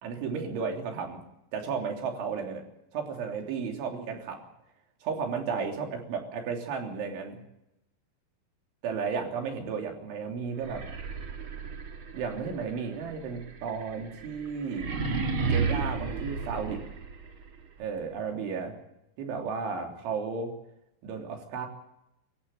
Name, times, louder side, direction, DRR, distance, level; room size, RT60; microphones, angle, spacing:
voice 1, 0.0-1.2 1.5-2.6 2.9-4.4 5.0-7.4 8.8-10.9 12.1-15.0 15.5-16.8 17.8-18.8 19.2-20.5 21.0-21.7, right 5 dB, 85° right, 3 dB, 5.6 m, -33 dB
sound 1, 10.6-17.5, right 4 dB, 40° right, 1.9 m, -33 dB
25.0 x 14.5 x 8.9 m, 0.86 s
omnidirectional pair, 5.3 m